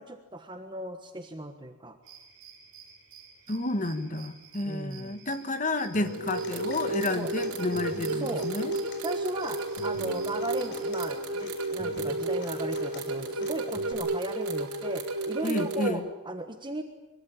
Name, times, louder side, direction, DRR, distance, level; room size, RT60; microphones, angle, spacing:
voice 1, 0.0-2.0 4.6-5.2 7.2-7.3 8.2-8.5 9.0-16.8, right 1 dB, 20° right, 6 dB, 1.4 m, -36 dB
sound 1, 2.0-11.1, right 7 dB, 55° right, 5.5 m, -52 dB
voice 2, 3.5-8.7 15.4-16.0, left 2 dB, 35° left, 9 dB, 1.7 m, -31 dB
Human voice / Acoustic guitar, 5.9-13.9, left 2 dB, 50° left, 4.3 m, -45 dB
sound 2, 6.1-15.9, right 2 dB, 90° right, 4.4 m, -32 dB
24.5 x 24.0 x 8.8 m, 1.0 s
head